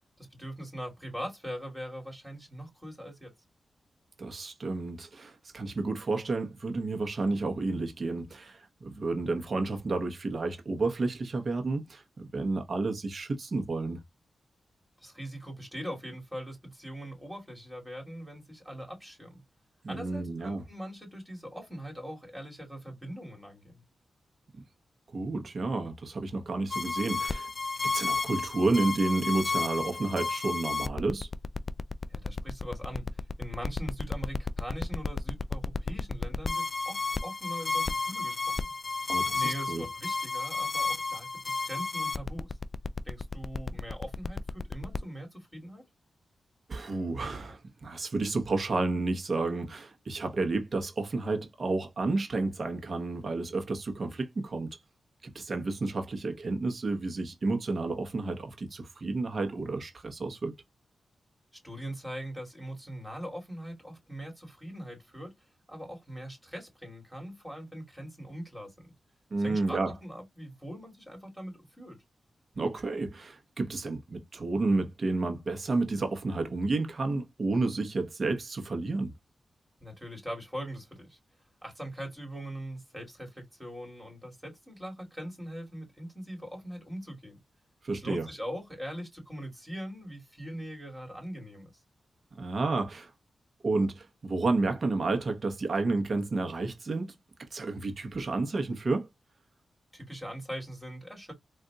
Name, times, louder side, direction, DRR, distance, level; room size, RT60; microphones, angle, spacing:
voice 1, 0.4-3.3 15.0-19.4 19.9-23.8 32.1-38.7 39.3-42.6 43.0-45.9 61.6-68.7 69.4-72.0 79.8-81.2 81.6-87.4 87.9-91.7 99.9-101.3, equal, 5° right, 2.5 m, -41 dB
voice 2, 4.2-14.0 19.8-20.6 25.1-27.5 27.8-31.3 39.1-39.8 46.7-54.7 55.2-60.5 69.3-69.9 72.6-79.1 87.8-88.3 92.4-93.1 93.6-97.1 97.5-99.1, right 3 dB, 55° right, 1.0 m, -31 dB
sound 1, 26.7-45.0, left 4 dB, 40° left, 0.3 m, -32 dB
3.8 x 2.6 x 2.3 m
cardioid pair, 65°, 0 cm